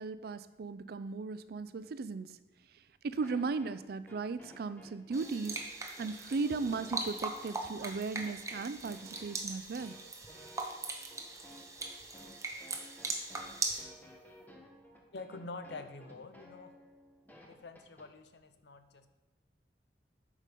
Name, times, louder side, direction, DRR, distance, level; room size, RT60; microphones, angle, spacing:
voice 1, 0.0-2.4 2.7-10.0, right 4 dB, 60° right, 13 dB, 0.4 m, -37 dB
sound 1, 3.2-18.1, equal, 10° left, 1.1 m, -55 dB
sound 2, 5.1-13.8, right 3 dB, 20° right, 0.8 m, -40 dB
voice 2, 15.1-16.8 17.4-19.1, left 3 dB, 70° left, 9 dB, 0.7 m, -47 dB
8.4 x 4.9 x 5.2 m, 1.1 s
head